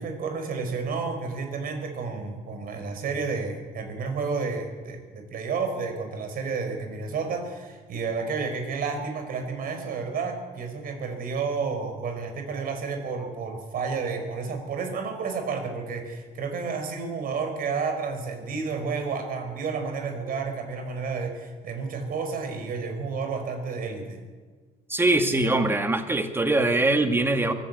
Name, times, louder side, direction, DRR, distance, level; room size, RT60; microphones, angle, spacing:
voice 1, 0.0-24.2, right 4 dB, 60° right, 6 dB, 5.1 m, -31 dB
voice 2, 24.9-27.5, right 2 dB, 15° right, 6 dB, 2.2 m, -22 dB
23.5 x 15.5 x 8.5 m, 1.4 s
cardioid pair, 110°, 17 cm